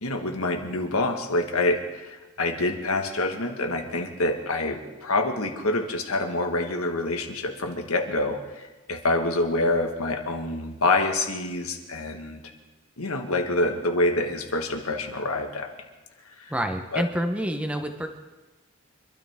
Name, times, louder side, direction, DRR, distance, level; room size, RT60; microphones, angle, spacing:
voice 1, 0.0-12.4 13.0-15.7 16.4-16.5 16.9-17.1, left 2 dB, 90° left, 4 dB, 1.8 m, -26 dB
voice 2, 16.5-18.1, equal, 5° right, 6 dB, 1.0 m, -28 dB
25.5 x 12.5 x 3.7 m, 1.2 s
head